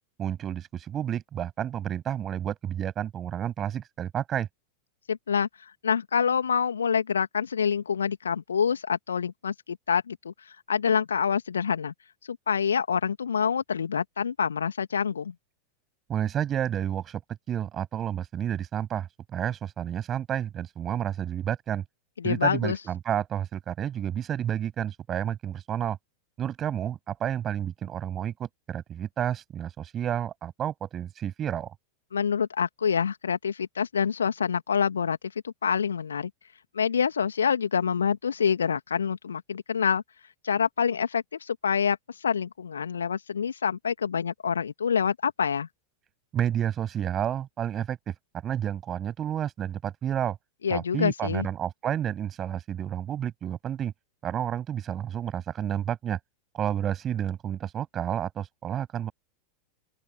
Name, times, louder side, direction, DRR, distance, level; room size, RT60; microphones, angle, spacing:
voice 1, 0.2-4.5 16.1-17.2 17.5-21.8 22.2-26.0 26.4-31.7 46.3-48.1 48.4-50.4 50.7-53.9 54.2-56.2 56.5-59.1, right 10 dB, 25° right, 8.0 m, -30 dB
voice 2, 5.1-10.3 10.7-11.9 12.3-15.3 22.2-22.8 32.1-35.2 35.4-36.3 36.7-40.0 40.4-45.7 50.6-51.5, left 7 dB, 70° left, 2.5 m, -26 dB
open air
figure-of-eight pair, 90°, 0 cm